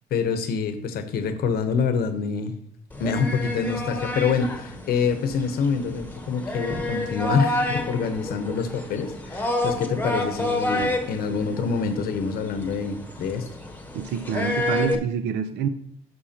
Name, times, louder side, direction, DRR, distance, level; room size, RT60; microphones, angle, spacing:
voice 1, 0.1-2.5 3.0-13.5, left 5 dB, 65° left, 0.9 m, -26 dB
sound 1, 2.9-14.9, left 1 dB, 10° left, 1.0 m, -29 dB
voice 2, 13.9-15.7, right 7 dB, 80° right, 0.6 m, -27 dB
11.0 x 6.2 x 2.9 m
cardioid pair, 110°, 17 cm